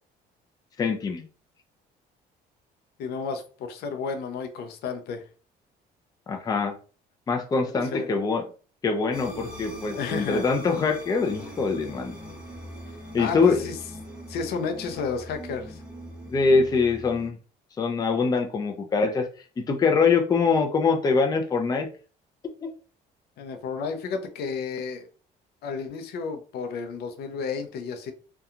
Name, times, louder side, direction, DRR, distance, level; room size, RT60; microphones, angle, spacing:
voice 1, 0.8-1.3 6.3-6.7 7.3-8.4 8.8-12.2 13.1-13.6 16.3-17.4 17.8-19.3 19.6-21.9 22.6-22.7, left 4 dB, 20° left, 0.4 m, -23 dB
voice 2, 3.0-5.2 7.9-8.1 9.9-10.4 13.2-13.8 14.3-15.8 23.4-25.1 25.6-28.1, left 5 dB, 75° left, 0.5 m, -32 dB
sound 1, 9.1-17.3, equal, 5° right, 0.9 m, -41 dB
2.8 x 2.2 x 2.4 m
cardioid pair, 110°, 17 cm